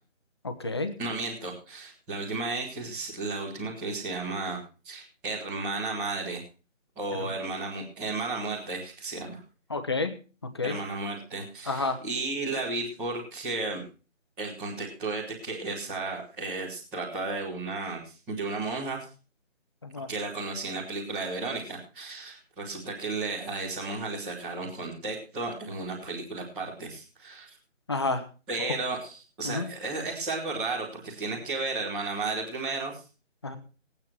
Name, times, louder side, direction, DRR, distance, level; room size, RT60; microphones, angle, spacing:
voice 1, 0.4-0.9 9.7-10.1 10.6-10.7 11.7-12.0 19.8-20.1 27.9-28.2 29.4-29.7 33.4-33.6, left 3 dB, 20° left, 9 dB, 0.9 m, -29 dB
voice 2, 1.0-4.6 4.8-6.4 6.9-9.4 10.6-13.8 14.4-19.0 20.1-27.5 28.5-33.0, right 3 dB, 5° right, -11 dB, 1.2 m, -33 dB
19.0 x 8.7 x 4.6 m, 0.36 s
figure-of-eight pair, 160°, 38 cm